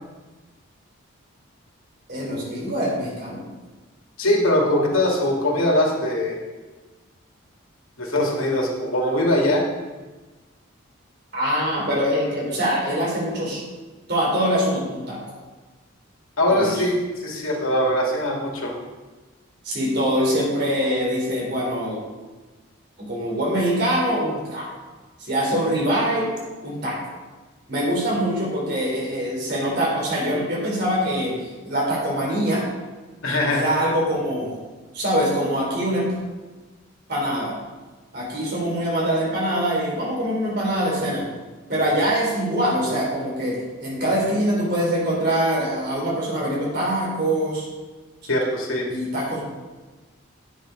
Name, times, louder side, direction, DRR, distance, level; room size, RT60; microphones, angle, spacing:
voice 1, 2.1-3.4 11.3-13.6 14.1-15.2 16.5-16.8 19.6-22.0 23.0-24.7 25.2-26.3 26.6-27.0 27.7-32.6 33.5-34.5 34.9-36.2 37.1-37.5 38.1-41.3 41.7-47.7 48.9-49.4, equal, 50° right, -4 dB, 3.7 m, -23 dB
voice 2, 4.2-6.4 8.0-9.6 16.4-18.7 33.2-33.6 48.3-48.9, left 1 dB, 85° left, -1 dB, 2.3 m, -21 dB
9.1 x 8.4 x 5.1 m, 1.3 s
head